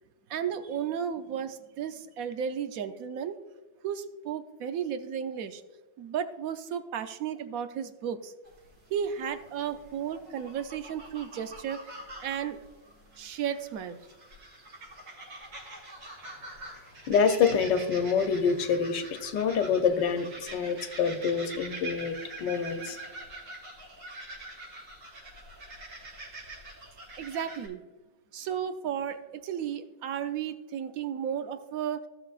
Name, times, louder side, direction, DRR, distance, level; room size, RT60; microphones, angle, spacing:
voice 1, 0.3-3.4 3.8-5.6 6.0-8.3 8.9-12.6 13.2-14.0 27.2-27.8 28.3-32.0, right 8 dB, 65° right, 9 dB, 1.0 m, -34 dB
sound 1, 8.4-27.7, right 2 dB, 80° right, 3.6 m, -45 dB
voice 2, 17.1-23.0, left 6 dB, 80° left, 8 dB, 1.4 m, -26 dB
16.0 x 6.6 x 2.4 m, 1.2 s
omnidirectional pair, 1.9 m